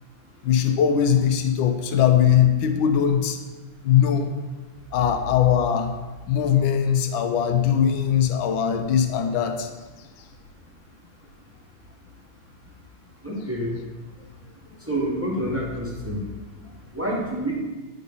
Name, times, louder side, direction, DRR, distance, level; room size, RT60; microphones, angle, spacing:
voice 1, 0.4-3.4 3.8-4.3 4.9-5.9 6.3-9.7, left 9 dB, 85° left, 6 dB, 1.4 m, -20 dB
voice 2, 13.2-13.7 14.9-16.2 16.9-17.5, right 1 dB, 10° right, -4 dB, 1.0 m, -27 dB
9.2 x 3.9 x 5.4 m, 1.2 s
omnidirectional pair, 2.1 m